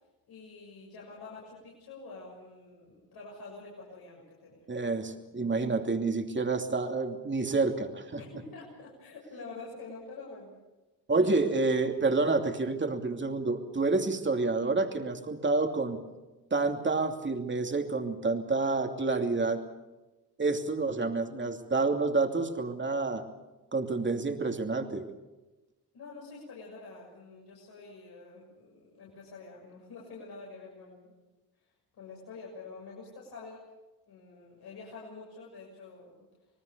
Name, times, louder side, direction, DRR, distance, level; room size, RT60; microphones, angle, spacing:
voice 1, 0.3-4.6 8.2-10.5 11.2-11.3 12.0-12.1 25.9-31.1 31.6-33.7 34.1-36.2, left 3 dB, 70° left, -4 dB, 6.9 m, -47 dB
voice 2, 4.7-8.2 11.1-16.0 16.5-19.6 20.4-23.2 23.7-25.1, right 3 dB, 30° right, 4 dB, 2.8 m, -28 dB
27.0 x 19.0 x 6.9 m, 1.1 s
cardioid pair, 75°, 39 cm